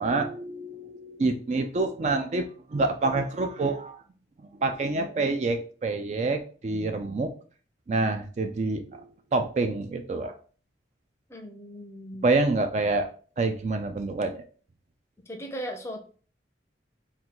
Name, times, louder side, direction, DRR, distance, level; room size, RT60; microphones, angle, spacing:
voice 1, 0.0-4.0 4.6-7.3 7.9-10.3 12.2-13.1 13.4-14.4, right 3 dB, 40° right, 7 dB, 0.3 m, -27 dB
voice 2, 11.3-12.3 15.3-16.0, equal, 15° left, 3 dB, 0.6 m, -37 dB
3.7 x 2.3 x 4.4 m, 0.41 s
head